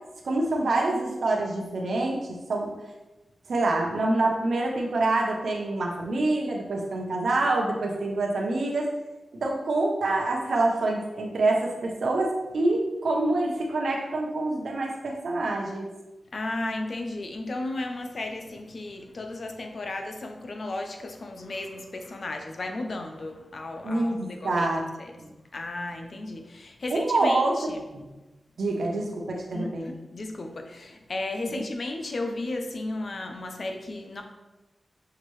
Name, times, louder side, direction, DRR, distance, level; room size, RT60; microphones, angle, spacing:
voice 1, 0.2-2.7 3.5-8.9 9.4-15.9 23.8-24.8 25.2-25.3 26.9-27.6 27.9-28.1 28.6-29.9, right 2 dB, 80° right, 0 dB, 0.7 m, -26 dB
voice 2, 16.3-24.7 25.0-25.1 25.5-27.8 29.5-34.2, left 2 dB, 60° left, 4 dB, 0.6 m, -34 dB
5.7 x 2.7 x 3.1 m, 1.1 s
cardioid pair, 60°, 0 cm